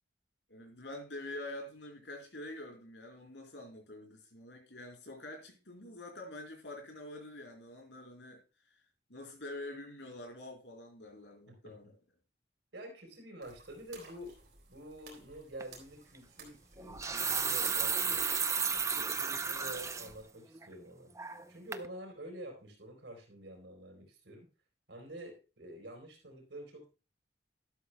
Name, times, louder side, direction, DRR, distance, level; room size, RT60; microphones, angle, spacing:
voice 1, 0.5-8.4 9.1-11.9, left 1 dB, 75° left, 2 dB, 3.8 m, -46 dB
voice 2, 11.5-11.9 12.7-14.4 14.7-18.3 18.7-21.1 21.5-24.5 24.9-26.9, right 1 dB, 85° right, 2 dB, 3.9 m, -48 dB
sound 1, 13.4-20.2, right 4 dB, 60° right, 3.6 m, -57 dB
sound 2, 15.6-15.8 16.8-20.1 20.6-20.7 21.2-21.5 21.7-21.9, right 6 dB, 15° right, 0.5 m, -33 dB
12.0 x 12.0 x 2.2 m, 0.31 s
head